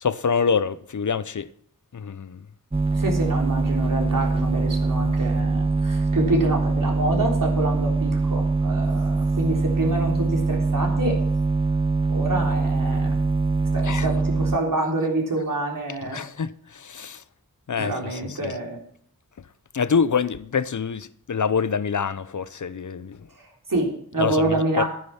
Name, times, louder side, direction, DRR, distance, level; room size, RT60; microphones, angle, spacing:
voice 1, 0.0-1.5 1.9-2.4 13.8-14.1 16.0-17.2 17.7-18.5 19.7-23.2 24.2-24.8, left 6 dB, 55° left, 0.7 m, -26 dB
sound 1, 2.7-14.6, right 3 dB, 15° right, 0.6 m, -23 dB
voice 2, 2.9-11.2 12.1-13.2 13.7-16.2 17.8-18.8 23.4-24.8, right 2 dB, 65° right, 3.7 m, -27 dB
12.0 x 9.6 x 5.8 m
wide cardioid pair, 65°, 35 cm